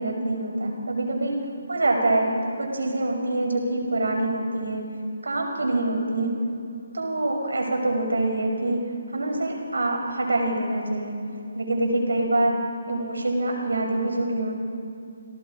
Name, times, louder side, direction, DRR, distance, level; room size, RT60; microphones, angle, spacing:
voice 1, 0.0-1.4 1.7-4.8 5.2-6.4 6.9-8.8 9.1-11.2 11.5-12.6 12.9-14.5, right 2 dB, 80° right, 1 dB, 6.0 m, -25 dB
29.5 x 18.5 x 4.9 m, 2.5 s
figure-of-eight pair, 150°, 0 cm